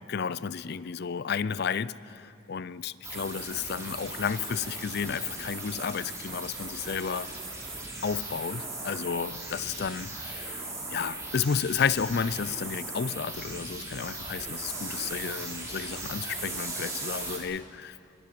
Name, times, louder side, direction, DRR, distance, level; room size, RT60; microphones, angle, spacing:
voice 1, 0.1-7.3 8.0-10.6 10.9-18.0, left 6 dB, 50° left, 0.4 m, -32 dB
sound 1, 3.0-17.4, right 2 dB, 15° right, 3.1 m, -38 dB
23.0 x 21.5 x 6.0 m
head